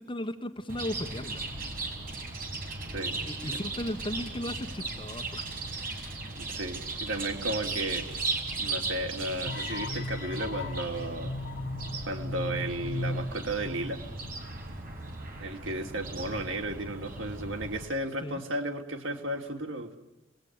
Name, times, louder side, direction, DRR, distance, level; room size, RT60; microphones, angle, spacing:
voice 1, 0.0-1.8 3.2-5.6 16.3-16.5 18.2-18.4, left 1 dB, 25° left, 6 dB, 1.7 m, -36 dB
Chirp tweet, 0.7-17.8, right 3 dB, 50° right, 4.9 m, -37 dB
voice 2, 6.3-8.0 8.6-11.3 12.0-14.0 15.4-20.0, right 1 dB, 90° right, 3 dB, 3.3 m, -34 dB
sound 1, 9.5-14.6, left 2 dB, 55° left, 0.9 m, -37 dB
30.0 x 20.5 x 9.7 m, 1.0 s
head